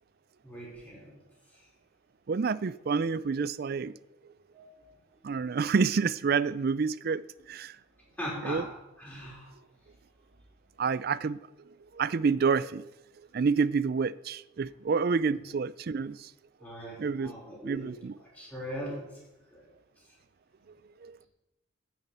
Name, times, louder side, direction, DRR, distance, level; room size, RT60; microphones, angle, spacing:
voice 1, 0.4-1.2 4.5-4.9 8.2-8.7 9.0-9.5 16.6-17.9 18.3-19.0 19.5-19.6, equal, 10° left, 4.5 m, -40 dB
voice 2, 2.3-4.0 5.2-7.2 7.5-7.8 8.4-8.7 10.8-11.4 11.7-12.9 13.3-16.3 17.0-17.3 17.6-18.2 21.0-21.2, right 5 dB, 50° right, 0.4 m, -28 dB
9.8 x 7.2 x 8.0 m
head